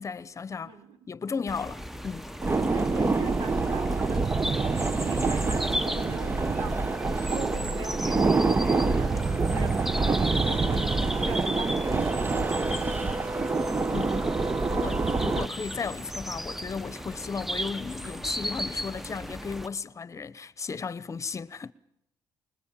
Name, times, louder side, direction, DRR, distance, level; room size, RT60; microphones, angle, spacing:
voice 1, 0.0-0.8 1.1-2.3 13.9-14.2 14.7-21.7, left 5 dB, 35° left, 1.0 m, -35 dB
voice 2, 0.6-1.0 2.5-6.7 7.1-8.3 8.6-10.9 11.2-12.5, right 3 dB, 70° right, 4.2 m, -42 dB
sound 1, 1.5-19.7, equal, 5° right, 1.0 m, -36 dB
sound 2, 2.4-15.5, right 3 dB, 25° right, 0.9 m, -26 dB
25.5 x 22.0 x 7.5 m
cardioid pair, 85°, 9 cm